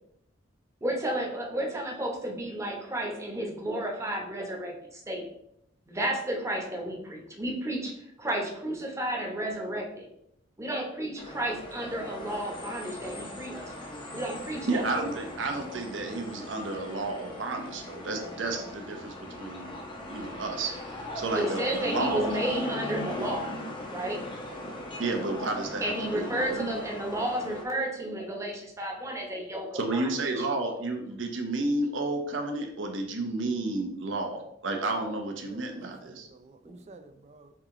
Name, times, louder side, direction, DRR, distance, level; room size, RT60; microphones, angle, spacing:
voice 1, 0.8-5.3 5.9-10.1 10.6-13.9 14.1-14.8 21.3-23.5 23.9-24.2 25.8-30.1 30.4-30.5, right 1 dB, 15° right, 0 dB, 0.8 m, -32 dB
sound 1, 11.2-27.6, left 1 dB, 25° left, 0.7 m, -39 dB
voice 2, 14.7-23.9 24.6-26.7 29.7-36.3, right 2 dB, 75° right, 3 dB, 0.8 m, -32 dB
voice 3, 35.4-37.5, right 2 dB, 35° right, 9 dB, 0.4 m, -51 dB
4.8 x 2.9 x 3.6 m, 0.76 s
head